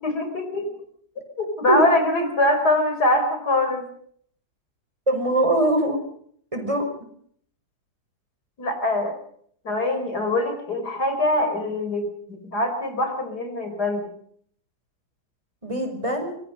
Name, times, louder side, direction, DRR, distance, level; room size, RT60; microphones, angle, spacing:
voice 1, 0.0-0.7 1.4-3.9 8.6-9.2 9.6-14.1, left 1 dB, 80° left, 6 dB, 5.2 m, -23 dB
voice 2, 5.1-6.0 6.5-6.9 15.6-16.4, right 1 dB, 20° right, 5 dB, 5.1 m, -22 dB
24.5 x 21.5 x 5.4 m, 0.63 s
omnidirectional pair, 1.7 m